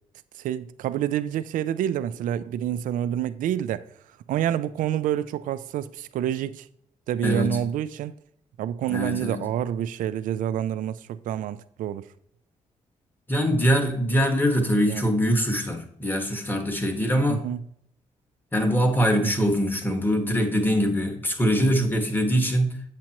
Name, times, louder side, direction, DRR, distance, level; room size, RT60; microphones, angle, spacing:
voice 1, 0.3-3.9 4.3-6.7 7.1-8.1 8.6-12.1 14.8-15.0 17.3-17.6 19.2-19.5, right 10 dB, 85° right, 0.4 m, -28 dB
voice 2, 7.2-7.6 8.9-9.5 13.3-17.5 18.5-22.8, equal, 15° left, 1.6 m, -23 dB
8.2 x 7.5 x 3.0 m
cardioid pair, 80°, 13 cm